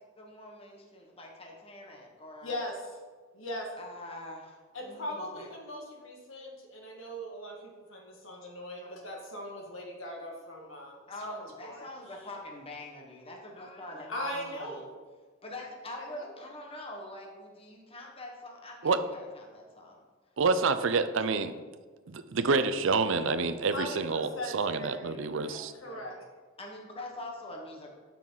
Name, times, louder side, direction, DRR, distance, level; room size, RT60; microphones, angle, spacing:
voice 1, 0.2-2.6 3.8-5.5 8.8-8.9 11.1-14.8 15.4-20.0 20.7-20.9 25.4-26.2 26.6-27.9, left 1 dB, 30° left, 0 dB, 1.4 m, -44 dB
voice 2, 2.4-2.8 3.3-3.7 4.7-11.0 11.3-11.9 14.1-14.9 16.0-16.3 23.7-25.2 25.8-26.1, left 1 dB, 75° left, 0 dB, 1.9 m, -39 dB
voice 3, 20.4-21.5 22.1-25.7, right 4 dB, 70° right, 11 dB, 0.6 m, -28 dB
12.0 x 5.8 x 4.0 m, 1.4 s
head